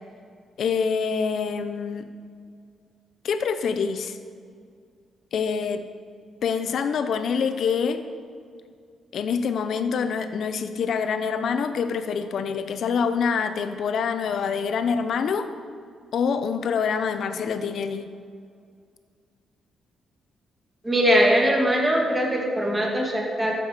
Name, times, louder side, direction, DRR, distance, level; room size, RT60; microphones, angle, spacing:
voice 1, 0.6-2.1 3.2-4.2 5.3-5.8 6.4-8.0 9.1-15.5 16.1-18.1, left 6 dB, 65° left, 9 dB, 0.8 m, -26 dB
voice 2, 20.8-23.5, equal, 15° right, -1 dB, 1.9 m, -21 dB
13.5 x 7.8 x 5.0 m, 2.2 s
cardioid pair, 120°, 0 cm